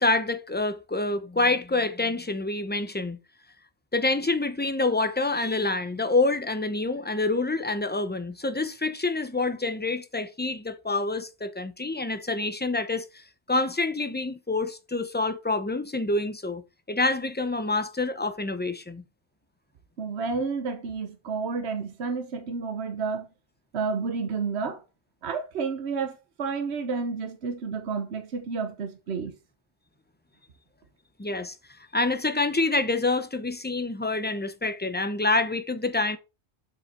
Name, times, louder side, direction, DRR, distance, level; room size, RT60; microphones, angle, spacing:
voice 1, 0.0-3.2 3.9-13.2 13.5-16.6 16.9-19.0 31.2-31.5 31.9-36.2, left 3 dB, 10° left, 0.6 m, -27 dB
voice 2, 20.0-23.3 23.7-24.8 25.2-29.3, right 5 dB, 70° right, 1.2 m, -30 dB
7.8 x 5.6 x 4.2 m
omnidirectional pair, 1.2 m